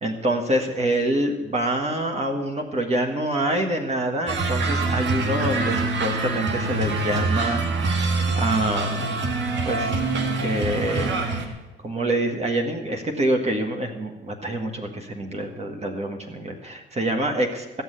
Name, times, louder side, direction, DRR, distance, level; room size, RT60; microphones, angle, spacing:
voice 1, 0.0-9.0 9.6-10.0 10.4-11.5 11.8-17.8, right 1 dB, 35° right, 3 dB, 1.7 m, -26 dB
sound 1, 4.3-11.5, right 3 dB, 65° right, 1.8 m, -25 dB
14.5 x 6.5 x 9.2 m, 1.1 s
cardioid pair, 90°, 20 cm